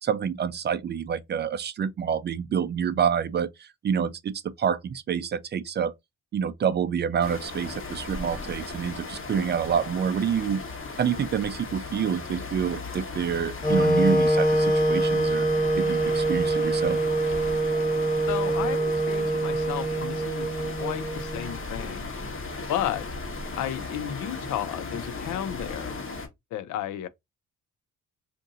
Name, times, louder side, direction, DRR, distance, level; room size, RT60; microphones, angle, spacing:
voice 1, 0.0-5.9 6.3-10.6 11.0-15.5 15.8-17.0, right 7 dB, 35° right, 0.4 m, -27 dB
sound 1, 7.2-26.3, left 3 dB, 45° left, 1.1 m, -37 dB
Wind instrument woodwind instrument, 13.6-21.6, right 2 dB, 25° left, 0.9 m, -24 dB
voice 2, 18.3-22.1 22.7-23.1 23.6-26.0 26.5-27.1, left 11 dB, 80° left, 0.5 m, -33 dB
2.6 x 2.5 x 3.7 m
cardioid pair, 90°, 30 cm